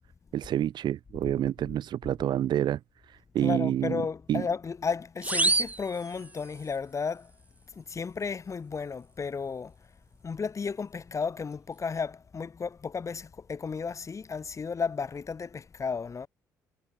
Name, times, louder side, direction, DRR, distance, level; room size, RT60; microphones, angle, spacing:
voice 1, 0.3-2.8 3.3-4.0 4.3-4.5, right 11 dB, 65° right, 3.5 m, -28 dB
voice 2, 3.4-7.3 7.8-9.7 10.2-16.3, left 5 dB, 40° left, 6.1 m, -33 dB
sound 1, 5.2-6.8, right 2 dB, 20° right, 1.2 m, -28 dB
hypercardioid pair, 60°, 8 cm